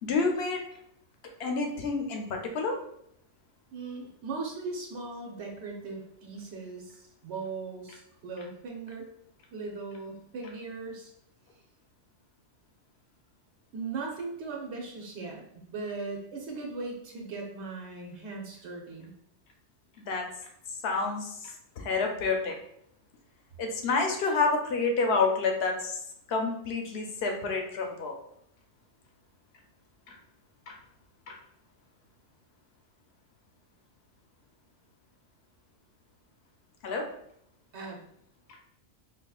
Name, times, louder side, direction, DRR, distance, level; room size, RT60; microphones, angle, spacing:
voice 1, 0.0-0.6 1.4-2.8 20.1-20.3 20.8-22.6 23.6-25.9 26.3-28.2 30.1-30.2 30.7-30.8 31.3-31.4 36.8-37.1, left 4 dB, 70° left, 3 dB, 0.9 m, -29 dB
voice 2, 3.7-9.1 9.5-11.1 13.7-15.4 15.7-19.1 37.7-38.0, right 3 dB, 90° right, 0 dB, 1.0 m, -38 dB
4.2 x 2.7 x 2.3 m, 0.71 s
omnidirectional pair, 1.1 m